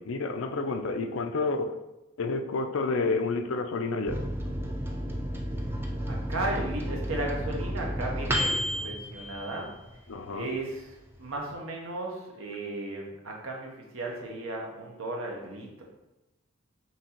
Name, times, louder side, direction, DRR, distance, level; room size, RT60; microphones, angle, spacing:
voice 1, 0.0-1.8 2.2-4.2 10.1-10.5, left 3 dB, 75° left, 8 dB, 0.4 m, -29 dB
Microwave oven, 4.1-10.2 10.6-10.7 10.9-11.5, equal, 10° right, 0.4 m, -32 dB
voice 2, 5.7-9.7 10.3-15.9, right 2 dB, 85° right, 0 dB, 1.0 m, -35 dB
5.9 x 2.7 x 2.9 m, 0.96 s
head